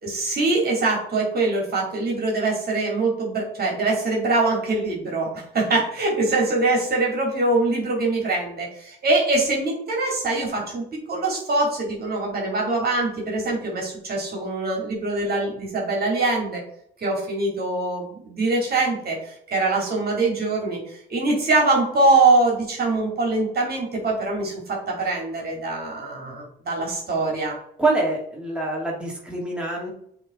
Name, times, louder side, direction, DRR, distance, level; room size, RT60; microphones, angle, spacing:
voice 1, 0.0-16.6 17.0-20.8 21.1-27.5, right 2 dB, 50° right, -1 dB, 2.7 m, -23 dB
voice 2, 27.8-29.9, right 2 dB, 5° right, -4 dB, 2.3 m, -25 dB
7.9 x 3.6 x 3.8 m, 0.67 s
cardioid pair, 90°, 20 cm